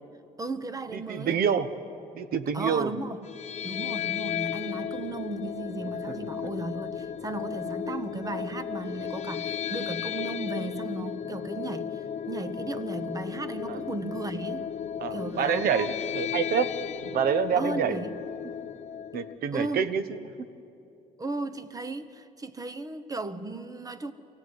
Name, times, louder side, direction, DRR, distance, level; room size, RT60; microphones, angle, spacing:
voice 1, 0.4-1.4 2.5-3.2 3.6-14.7 15.1-15.9 17.6-18.1 19.5-19.9 21.2-24.1, right 2 dB, 20° right, 12 dB, 1.1 m, -35 dB
voice 2, 0.9-1.7 2.1-2.9 6.1-6.2 13.7-13.8 15.0-16.7 17.0-18.0 19.1-20.5, right 7 dB, 60° right, 12 dB, 1.2 m, -27 dB
sound 1, 3.2-19.4, left 8 dB, 40° left, 0.8 m, -34 dB
23.5 x 16.0 x 9.6 m, 2.7 s
cardioid pair, 110°, 17 cm